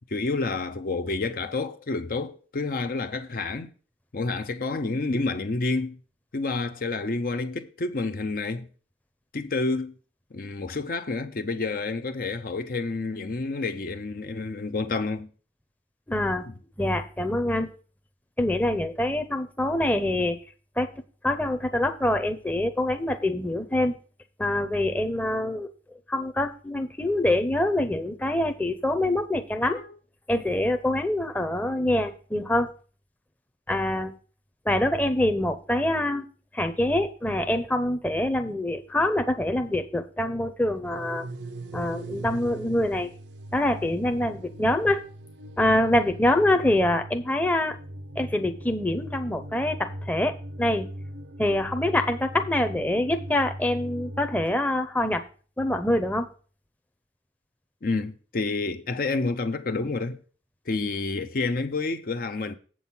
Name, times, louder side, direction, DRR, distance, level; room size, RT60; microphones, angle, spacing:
voice 1, 0.1-3.7 4.1-6.0 6.3-8.7 9.3-9.9 10.3-15.3 16.4-16.5 29.7-30.0 57.8-60.2 60.7-62.5, left 3 dB, 50° left, 0.6 m, -29 dB
voice 2, 16.1-16.4 16.8-17.7 18.4-20.4 20.8-20.9 21.2-23.9 24.4-25.7 26.1-29.8 30.3-32.7 33.7-34.1 34.7-36.2 36.5-41.2 41.7-43.1 43.5-45.0 45.6-47.8 48.2-50.9 51.4-55.2 55.6-56.3, left 1 dB, 10° left, 0.7 m, -25 dB
sound 1, 40.8-54.5, right 1 dB, 80° right, 0.7 m, -39 dB
8.1 x 6.2 x 5.5 m
head